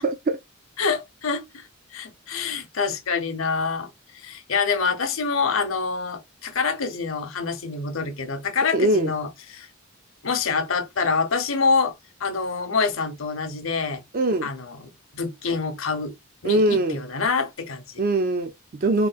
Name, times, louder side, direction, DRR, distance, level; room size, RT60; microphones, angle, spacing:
voice 1, 0.0-0.4 8.7-9.1 14.1-14.5 16.4-17.0 18.0-19.1, right 2 dB, 40° right, 0.4 m, -22 dB
voice 2, 0.8-1.6 1.9-9.7 10.2-11.9 12.2-14.0 14.4-16.1 16.4-17.8, left 4 dB, 70° left, 0.8 m, -26 dB
3.6 x 2.5 x 2.4 m
head